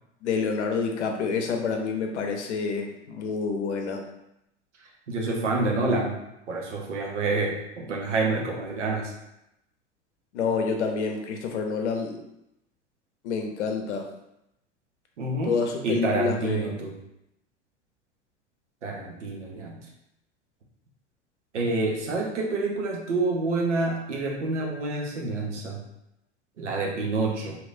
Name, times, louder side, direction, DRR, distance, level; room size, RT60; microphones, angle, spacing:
voice 1, 0.2-4.0 10.3-12.2 13.2-14.1 15.4-16.7, left 5 dB, 75° left, 3 dB, 0.7 m, -28 dB
voice 2, 5.1-6.2 6.5-9.1 15.2-17.0 18.8-19.8 21.5-25.8 26.6-27.6, right 3 dB, 85° right, 0 dB, 0.8 m, -28 dB
3.2 x 2.9 x 2.5 m, 0.84 s
hypercardioid pair, 85°, 35 cm